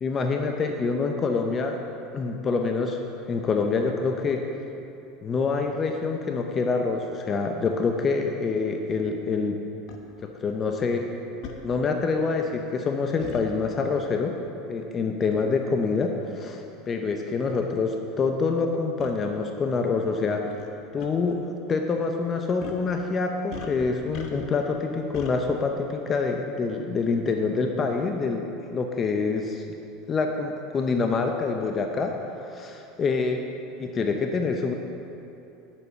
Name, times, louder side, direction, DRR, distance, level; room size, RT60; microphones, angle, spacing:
voice 1, 0.0-1.8 2.1-3.0 3.3-4.4 5.2-9.6 10.2-11.1 11.6-14.4 14.7-20.5 20.9-29.6 30.1-32.2 32.4-33.4 33.8-34.7, left 4 dB, 30° left, 4 dB, 0.7 m, -26 dB
sound 1, 9.9-10.0 11.4-11.6 13.2-13.5 15.2-15.4 16.3-16.4 17.2-17.3 17.5-17.7 19.0-19.1 20.5-20.7 21.0-21.1 22.6-22.9 23.5-24.6 25.1-25.4, left 5 dB, 55° left, 1.1 m, -40 dB
9.8 x 7.1 x 5.5 m, 2.9 s
supercardioid pair, 110°, 0 cm